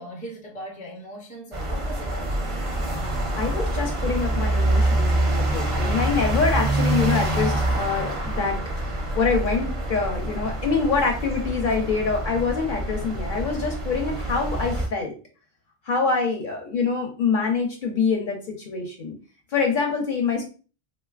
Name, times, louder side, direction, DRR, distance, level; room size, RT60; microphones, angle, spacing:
voice 1, 0.0-2.6, right 1 dB, 10° left, 0.4 m, -39 dB
sound 1, 1.5-14.9, right 1 dB, 45° right, 0.4 m, -26 dB
voice 2, 3.4-15.1 15.9-19.1 19.5-20.4, left 4 dB, 55° left, 0.7 m, -25 dB
3.1 x 2.2 x 2.3 m
omnidirectional pair, 1.1 m